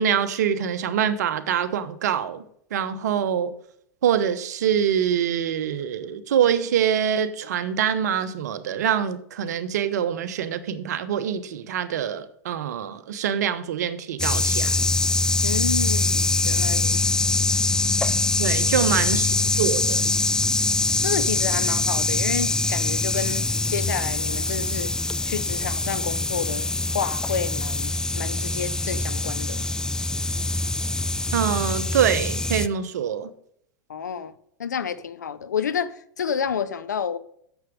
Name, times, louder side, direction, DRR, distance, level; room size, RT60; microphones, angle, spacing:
voice 1, 0.0-2.4 2.7-3.5 4.0-14.7 18.4-20.0 31.3-33.3, right 8 dB, 70° right, 1.0 m, -25 dB
sound 1, 14.2-32.7, left 2 dB, 5° left, 0.4 m, -24 dB
voice 2, 15.4-17.2 17.6-17.7 18.8-18.9 21.0-24.9 25.3-29.6 33.9-34.3 34.6-37.2, left 7 dB, 85° left, 0.7 m, -30 dB
9.3 x 7.2 x 5.1 m
hypercardioid pair, 95°, 9 cm